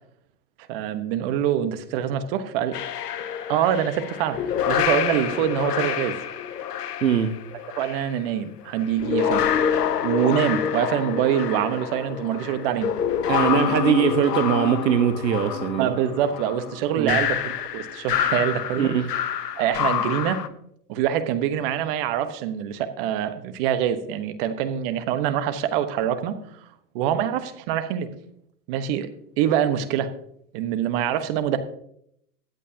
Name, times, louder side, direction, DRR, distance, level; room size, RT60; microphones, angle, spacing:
voice 1, 0.7-2.7 3.5-4.4 4.7-6.2 7.8-9.5 10.0-12.9 15.8-18.9 19.6-20.4 20.9-26.4 26.9-28.1 28.7-29.1 29.4-30.1 30.5-31.6, right 10 dB, 35° right, 10 dB, 1.2 m, -25 dB
sound 1, 2.7-8.1 8.8-20.5, left 9 dB, 70° left, 1.1 m, -27 dB
voice 2, 7.0-7.4 13.3-15.9 17.0-17.2 18.8-19.0, right 8 dB, 90° right, 8 dB, 1.2 m, -21 dB
22.0 x 8.2 x 2.8 m, 0.71 s
hypercardioid pair, 135°, 49 cm